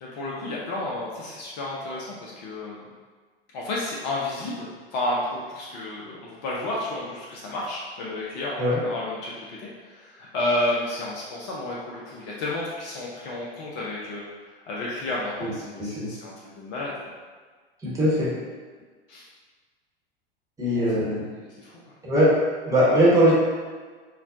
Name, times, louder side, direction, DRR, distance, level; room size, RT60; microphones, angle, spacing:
voice 1, 0.0-2.8 3.5-14.2 14.7-16.9 19.1-19.2 20.8-20.9 21.3-21.7, left 1 dB, 45° left, -4 dB, 0.6 m, -31 dB
voice 2, 15.8-16.1 17.8-18.3 20.6-21.2 22.0-22.3 22.7-23.3, equal, 10° right, -8 dB, 1.1 m, -20 dB
4.1 x 2.2 x 2.7 m, 1.5 s
figure-of-eight pair, 90°, 32 cm